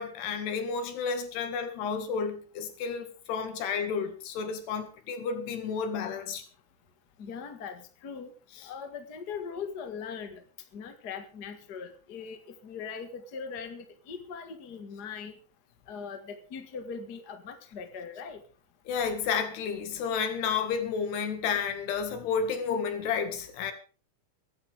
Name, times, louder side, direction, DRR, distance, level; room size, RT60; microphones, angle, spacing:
voice 1, 0.0-6.4 18.9-23.7, left 6 dB, 85° left, 4.1 m, -31 dB
voice 2, 7.2-8.3 8.6-10.4 10.7-15.4 15.9-18.4, left 6 dB, 55° left, 1.1 m, -40 dB
24.0 x 11.0 x 3.6 m
omnidirectional pair, 4.7 m